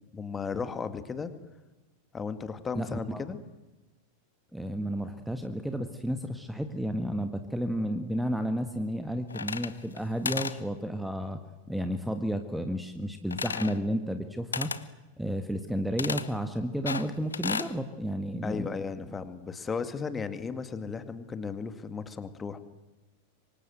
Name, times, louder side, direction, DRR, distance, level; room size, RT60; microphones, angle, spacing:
voice 1, 0.1-1.3 2.1-3.4 18.4-22.6, left 5 dB, 15° left, 11 dB, 2.1 m, -35 dB
voice 2, 2.7-3.2 4.5-11.4 11.7-14.7 15.2-18.8, equal, ahead, 8 dB, 1.6 m, -32 dB
sound 1, 9.3-10.0 10.2-10.6 13.3-13.8 14.5-14.8 16.0-16.3 16.9-17.7, left 5 dB, 75° left, 1.1 m, -33 dB
27.5 x 24.5 x 8.0 m, 1.1 s
figure-of-eight pair, 90°, 0 cm